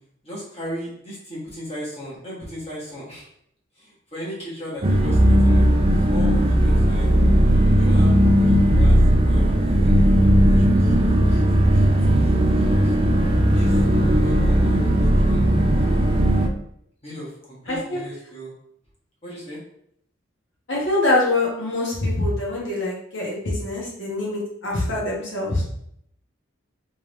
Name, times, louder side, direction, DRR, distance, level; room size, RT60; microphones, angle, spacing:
voice 1, 0.2-3.3 3.8-5.7 6.1-7.1 7.8-10.0 10.5-11.4 11.7-11.9 12.1-13.0 13.5-13.7 14.2-15.5 15.7-16.0 17.0-18.5 19.2-19.6, equal, 30° left, -7 dB, 1.4 m, -36 dB
sound 1, 4.8-16.5, equal, 25° right, 0.3 m, -17 dB
voice 2, 17.7-18.0 20.7-25.6, left 2 dB, 70° left, -4 dB, 1.4 m, -24 dB
3.5 x 3.3 x 3.1 m, 0.71 s
head